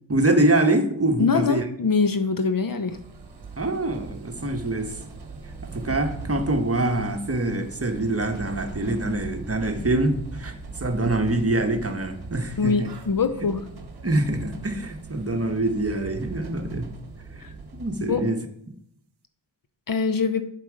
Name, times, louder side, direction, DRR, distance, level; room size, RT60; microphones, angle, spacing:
voice 1, 0.1-1.6 3.6-4.9 5.7-10.5 10.8-12.9 14.0-16.9 17.7-18.4, right 2 dB, 30° right, 1.2 m, -24 dB
voice 2, 1.2-3.0 12.6-13.7 17.4-17.5 18.1-18.3 19.9-20.5, left 5 dB, 45° left, 0.8 m, -23 dB
sound 1, 2.9-18.2, right 3 dB, 55° right, 1.2 m, -39 dB
7.5 x 5.8 x 5.0 m
cardioid pair, 45°, 47 cm